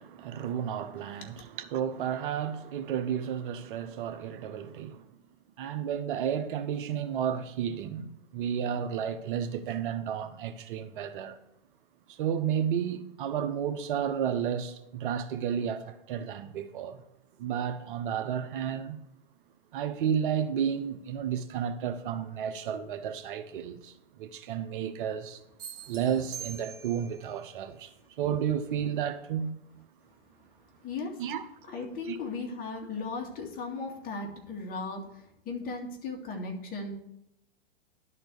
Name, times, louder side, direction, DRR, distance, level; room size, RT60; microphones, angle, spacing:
voice 1, 0.0-5.0 5.6-11.4 12.1-17.0 17.4-19.0 19.7-25.4 25.9-29.5 31.2-31.5 32.0-32.2, right 8 dB, 60° right, 0.9 m, -32 dB
sound 1, 25.6-27.2, right 7 dB, 40° right, 1.8 m, -43 dB
voice 2, 30.8-31.2 31.6-35.0 35.5-36.9, left 3 dB, 30° left, 2.1 m, -36 dB
11.5 x 4.4 x 6.9 m
hypercardioid pair, 110°, 30 cm